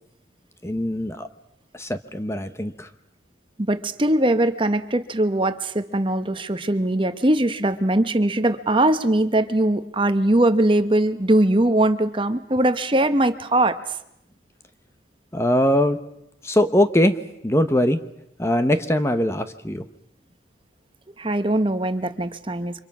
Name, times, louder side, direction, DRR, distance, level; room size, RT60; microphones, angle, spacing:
voice 1, 0.6-1.3 1.7-2.9 15.3-16.0 16.4-17.2 17.4-18.0 18.4-19.8, left 1 dB, 15° left, 9 dB, 0.9 m, -21 dB
voice 2, 3.7-13.8 21.2-22.8, right 1 dB, 25° right, 10 dB, 1.0 m, -21 dB
29.5 x 25.5 x 6.1 m, 0.81 s
head